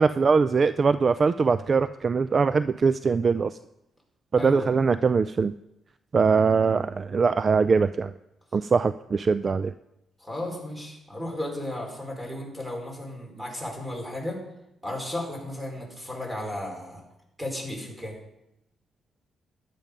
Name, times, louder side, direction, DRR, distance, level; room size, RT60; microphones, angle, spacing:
voice 1, 0.0-3.6 4.3-5.5 6.1-8.1 8.5-9.7, right 5 dB, 40° right, 14 dB, 0.3 m, -22 dB
voice 2, 4.3-4.7 10.2-14.4 14.8-17.0 17.4-18.2, left 1 dB, 10° right, 0 dB, 4.7 m, -34 dB
12.5 x 10.5 x 5.3 m, 0.88 s
cardioid pair, 85°, 0 cm